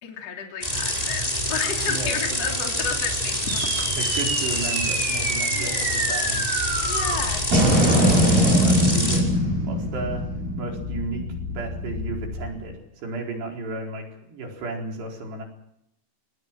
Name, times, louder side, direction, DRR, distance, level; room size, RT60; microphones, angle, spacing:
voice 1, 0.0-3.7 4.0-4.3 5.5-5.8 6.8-7.5 7.8-8.1, left 6 dB, 40° left, 2 dB, 3.9 m, -32 dB
sound 1, 0.6-9.2, left 1 dB, 10° left, 4.5 m, -27 dB
voice 2, 1.9-2.4 3.7-6.4 7.9-9.4 9.7-10.2 10.6-15.4, right 3 dB, 70° right, 1 dB, 6.5 m, -34 dB
sound 2, 3.5-12.1, right 1 dB, 50° right, 7.2 m, -23 dB
sound 3, 6.7-12.5, left 5 dB, 85° left, 5.9 m, -34 dB
27.0 x 19.5 x 7.6 m, 0.78 s
omnidirectional pair, 5.0 m